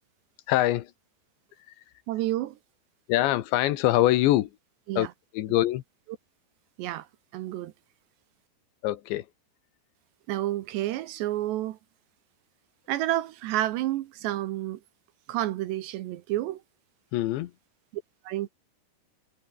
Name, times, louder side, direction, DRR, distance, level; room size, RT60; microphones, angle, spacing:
voice 1, 0.5-0.9 1.7-1.8 3.1-4.5 5.0-5.1 5.3-5.8 8.8-9.3 17.1-17.5, left 15 dB, 75° left, 3.2 m, -24 dB
voice 2, 2.1-2.6 4.9-5.1 6.8-7.1 7.3-7.7 10.3-11.8 12.9-14.8 15.3-16.6 18.3-18.5, right 14 dB, 75° right, 2.9 m, -29 dB
omnidirectional pair, 5.5 m